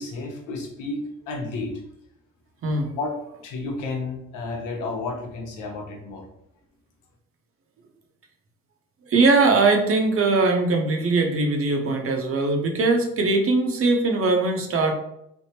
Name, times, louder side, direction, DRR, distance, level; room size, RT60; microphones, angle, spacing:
voice 1, 0.0-1.7 2.9-3.1 3.4-6.2, left 3 dB, 90° left, 1 dB, 0.8 m, -31 dB
voice 2, 9.1-14.9, right 3 dB, 50° right, 3 dB, 0.6 m, -21 dB
3.4 x 2.0 x 2.8 m, 0.77 s
cardioid pair, 90°, 30 cm